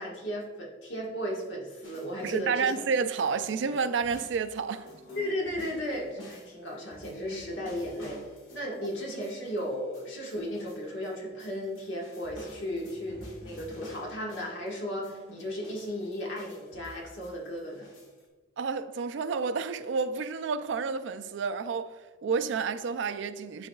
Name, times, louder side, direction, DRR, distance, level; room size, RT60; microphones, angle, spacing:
voice 1, 0.0-2.8 5.1-8.2 8.5-17.9, equal, 70° left, 1.6 m, -35 dB
sound 1, 1.8-3.1 3.4-11.1 11.4-14.7 15.0-18.2, equal, 85° left, 1.8 m, -49 dB
voice 2, 2.2-4.9 18.6-22.0 22.2-23.7, right 5 dB, 65° right, 0.4 m, -30 dB
12.0 x 4.0 x 2.3 m
head